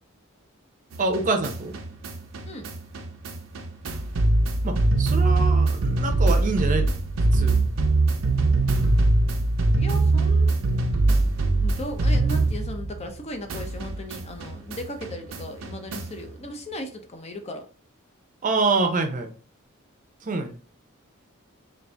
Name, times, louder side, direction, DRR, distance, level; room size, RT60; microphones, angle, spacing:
sound 1, 0.9-13.2 13.5-16.3, right 2 dB, 90° right, 0.6 m, -23 dB
voice 1, 1.0-1.7 4.6-6.9 7.2-7.6 18.4-19.3 20.2-20.6, right 3 dB, 40° right, 0.6 m, -26 dB
voice 2, 9.8-10.9 11.6-17.7, left 1 dB, 30° left, 0.5 m, -37 dB
3.9 x 2.5 x 3.3 m
head